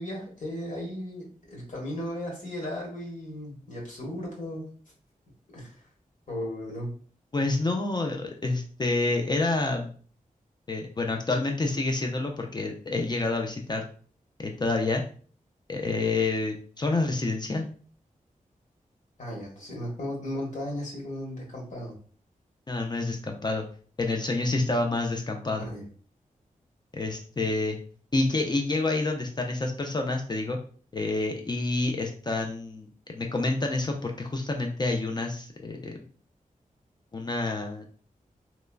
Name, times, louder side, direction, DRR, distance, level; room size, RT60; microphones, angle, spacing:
voice 1, 0.0-4.7 5.5-5.7 6.3-6.9 19.2-21.9 25.6-25.8, left 1 dB, 60° left, -3 dB, 1.3 m, -35 dB
voice 2, 7.3-9.9 10.7-13.9 14.4-15.0 15.7-17.7 22.7-23.7 24.0-25.7 26.9-27.8 28.1-30.6 30.9-36.0 37.1-37.8, left 2 dB, 30° left, 2 dB, 0.4 m, -28 dB
3.0 x 2.2 x 2.3 m, 0.43 s
wide cardioid pair, 90°, 14 cm